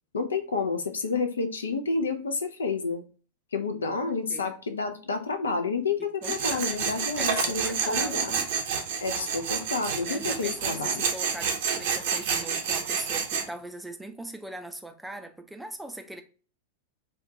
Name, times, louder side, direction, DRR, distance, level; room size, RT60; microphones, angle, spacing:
voice 1, 0.1-3.0 3.5-8.3 9.0-11.1, left 4 dB, 70° left, 0.6 m, -30 dB
voice 2, 4.1-4.5 6.2-6.8 7.2-8.5 10.0-16.2, right 1 dB, 5° right, 0.5 m, -41 dB
Tools, 6.2-13.5, right 6 dB, 55° right, 0.7 m, -29 dB
4.4 x 2.4 x 2.7 m
figure-of-eight pair, 90°, 0 cm